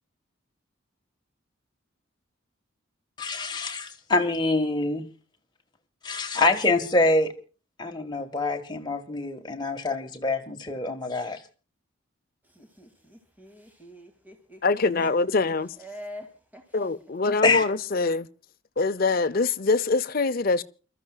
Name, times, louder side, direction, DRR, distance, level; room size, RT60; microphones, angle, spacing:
voice 1, 3.2-5.1 6.0-7.3 7.8-11.4 17.4-17.6, left 2 dB, 20° left, 1.6 m, -25 dB
voice 2, 12.5-14.6 15.0-15.1 15.8-16.3 16.5-16.6, equal, 10° right, 2.2 m, -44 dB
voice 3, 14.6-15.7 16.7-18.3 18.8-20.6, left 3 dB, 45° left, 0.6 m, -24 dB
29.0 x 13.5 x 2.3 m
head